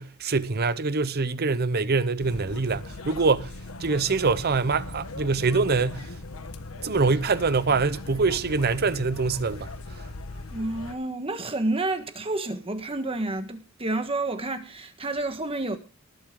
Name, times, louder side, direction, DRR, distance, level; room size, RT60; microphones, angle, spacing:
voice 1, 0.0-3.5 3.8-6.1 6.8-9.7, right 4 dB, 50° right, 0.8 m, -24 dB
sound 1, 2.2-10.9, left 2 dB, 85° left, 1.3 m, -39 dB
voice 2, 10.5-15.8, right 2 dB, 25° right, 1.4 m, -29 dB
19.5 x 8.0 x 3.7 m
head